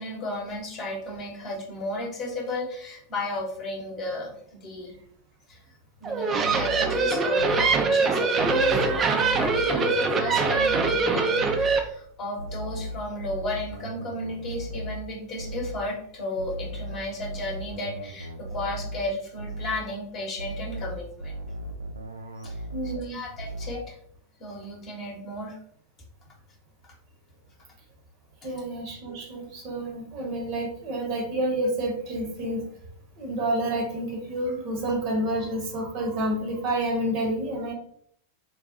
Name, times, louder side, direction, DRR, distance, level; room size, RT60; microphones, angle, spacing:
voice 1, 0.0-4.3 4.6-4.9 5.5-5.6 6.0-21.3 22.4-23.9 24.4-25.6 28.4-28.5, left 1 dB, 30° left, 0 dB, 1.0 m, -34 dB
sound 1, 6.0-11.8, right 4 dB, 25° right, 0.5 m, -23 dB
sound 2, 6.4-7.9 8.4-11.1 11.4-11.9 12.4-15.9 16.4-19.1 19.4-19.9 20.4-23.1 23.4-23.9, right 1 dB, 75° right, 0.3 m, -37 dB
voice 2, 22.7-23.2 28.4-32.7 33.2-37.7, right 1 dB, 40° right, 1 dB, 0.9 m, -29 dB
3.8 x 2.2 x 2.7 m, 0.65 s
figure-of-eight pair, 90°, 0 cm